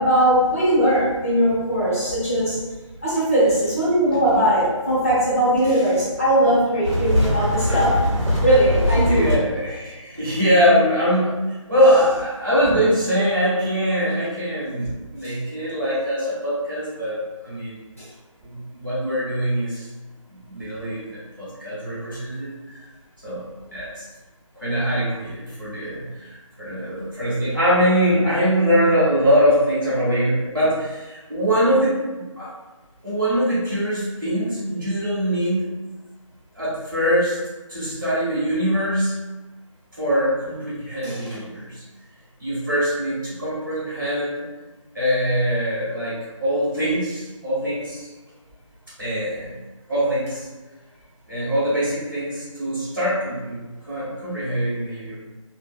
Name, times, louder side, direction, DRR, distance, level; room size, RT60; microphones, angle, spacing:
voice 1, 0.0-2.6 3.0-8.0 8.4-9.3 18.0-18.1 41.0-41.2, right 1 dB, 25° left, -11 dB, 0.7 m, -19 dB
sound 1, 6.8-9.3, left 1 dB, 60° right, 1.0 m, -21 dB
voice 2, 9.1-17.8 18.4-19.9 20.3-22.9 23.2-24.0 24.6-26.3 26.6-32.5 33.0-35.7 36.5-37.4 37.7-39.1 40.0-41.8 42.4-44.4 44.9-48.1 49.0-49.5 49.9-50.5 51.3-55.1, equal, 40° right, -9 dB, 1.1 m, -23 dB
2.6 x 2.3 x 2.3 m, 1.2 s
figure-of-eight pair, 180°, 17 cm